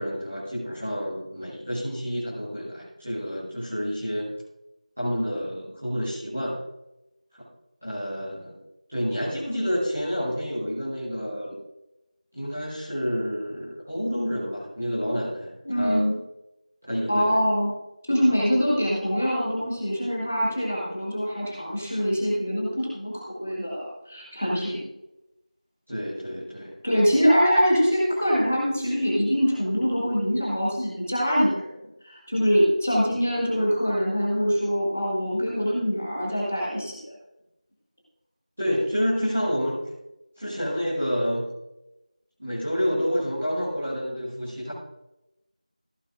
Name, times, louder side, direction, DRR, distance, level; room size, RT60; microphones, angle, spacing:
voice 1, 0.0-4.3 5.0-6.6 7.4-7.5 7.8-8.6 8.9-11.6 12.3-16.0 16.8-17.4 25.9-26.8 38.6-39.8 40.4-41.5 42.4-44.7, equal, 10° right, -12 dB, 1.1 m, -29 dB
voice 2, 15.6-16.2 17.1-17.7 18.1-24.9 26.8-31.7 32.0-37.1, equal, 15° left, -5 dB, 1.3 m, -24 dB
14.5 x 8.9 x 2.4 m, 0.94 s
figure-of-eight pair, 175°, 4 cm